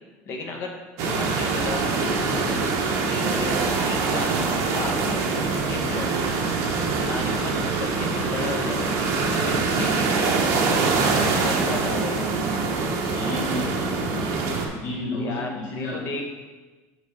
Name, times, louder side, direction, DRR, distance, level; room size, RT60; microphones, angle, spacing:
voice 1, 0.3-0.7 1.0-2.5 3.1-3.6 3.8-6.3 7.0-10.9 11.4-12.1 15.1-16.2, left 2 dB, 35° left, 1 dB, 1.1 m, -34 dB
sound 1, 1.0-14.7, right 4 dB, 50° right, 1.0 m, -24 dB
voice 2, 11.9-12.4 13.1-14.2 14.7-16.2, left 2 dB, 55° left, -4 dB, 1.4 m, -32 dB
6.2 x 3.9 x 5.7 m, 1.2 s
cardioid pair, 170°, 6 cm